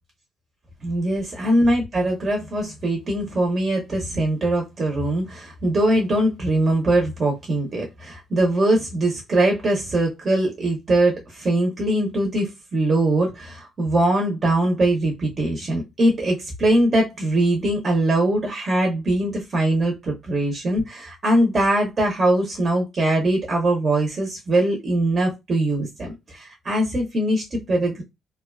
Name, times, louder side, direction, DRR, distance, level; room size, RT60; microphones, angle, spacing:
voice 1, 0.8-28.0, right 1 dB, 45° right, 0.7 m, -22 dB
2.6 x 2.3 x 2.3 m
cardioid pair, 90°, 0 cm